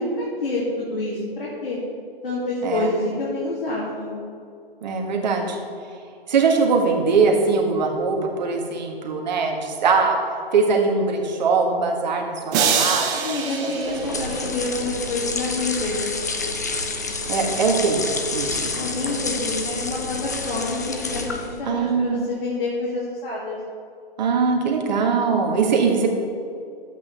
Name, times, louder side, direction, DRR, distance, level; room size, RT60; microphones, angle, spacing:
voice 1, 0.0-1.8 2.2-4.1 13.1-16.0 18.8-23.6, left 2 dB, 60° left, -6 dB, 2.5 m, -27 dB
voice 2, 4.8-5.6 6.3-10.2 10.5-13.4 13.8-13.9 14.2-14.4 17.3-18.0 18.3-18.7 21.6-22.2 24.2-26.1, right 4 dB, 45° right, 2 dB, 1.5 m, -21 dB
sound 1, 12.5-14.8, right 6 dB, 20° right, 0.7 m, -24 dB
sound 2, 13.8-21.6, left 3 dB, 20° left, 0.3 m, -28 dB
12.0 x 8.3 x 3.4 m, 2.4 s
figure-of-eight pair, 130°, 30 cm